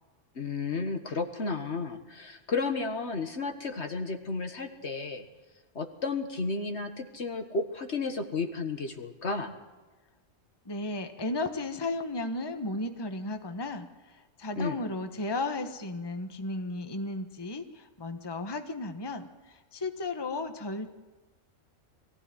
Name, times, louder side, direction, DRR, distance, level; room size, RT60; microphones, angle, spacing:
voice 1, 0.4-5.2 5.8-9.5 14.6-14.8, left 4 dB, 55° left, 7 dB, 1.8 m, -32 dB
voice 2, 10.6-20.9, left 2 dB, 20° left, 7 dB, 1.2 m, -34 dB
22.0 x 16.0 x 9.7 m, 1.2 s
omnidirectional pair, 1.4 m